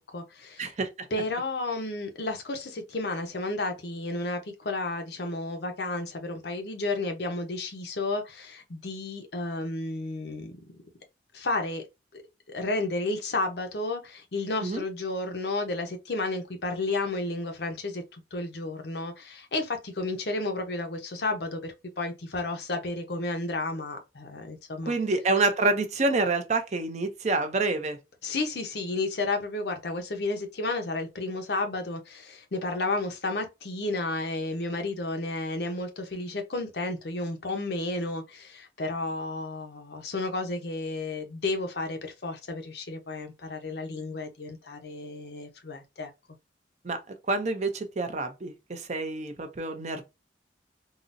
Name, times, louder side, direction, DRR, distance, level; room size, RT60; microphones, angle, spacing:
voice 1, 0.0-0.7 1.1-10.6 11.3-11.8 12.1-12.2 12.5-25.0 28.2-46.1, left 2 dB, 60° left, 0.7 m, -32 dB
voice 2, 0.6-1.1 14.6-14.8 24.9-28.0 46.8-47.0 47.3-50.0, right 3 dB, 40° right, 0.5 m, -27 dB
3.7 x 2.0 x 2.5 m
head